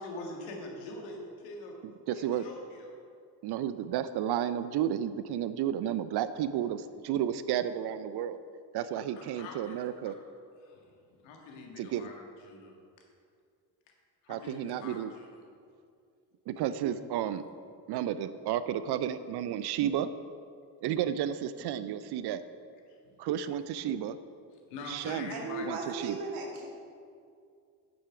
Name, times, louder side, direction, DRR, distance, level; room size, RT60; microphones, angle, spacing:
voice 1, 0.0-1.8 2.1-3.0 9.0-10.1 10.6-11.0 11.2-12.7 14.2-15.4 22.9-23.0 24.7-25.7, left 2 dB, 75° left, 1 dB, 1.8 m, -44 dB
voice 2, 2.1-2.4 3.4-8.4 8.7-10.1 11.8-12.1 14.3-15.1 16.5-17.5 17.9-20.1 20.8-22.4 23.2-24.2 24.9-25.3 25.6-26.2, right 10 dB, 55° right, 13 dB, 0.6 m, -32 dB
voice 3, 25.3-26.7, right 3 dB, 75° right, 0 dB, 1.9 m, -36 dB
8.6 x 7.9 x 4.9 m, 2.3 s
hypercardioid pair, 55°, 50 cm